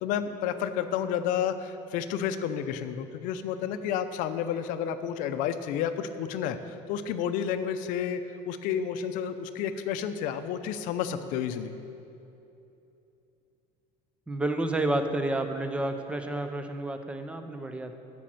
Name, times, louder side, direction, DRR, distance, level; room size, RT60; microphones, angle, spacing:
voice 1, 0.0-11.7, left 8 dB, 65° left, 10 dB, 0.6 m, -31 dB
voice 2, 14.3-17.9, right 2 dB, 10° right, 7 dB, 0.6 m, -30 dB
10.0 x 6.1 x 7.7 m, 2.8 s
cardioid pair, 155°, 15 cm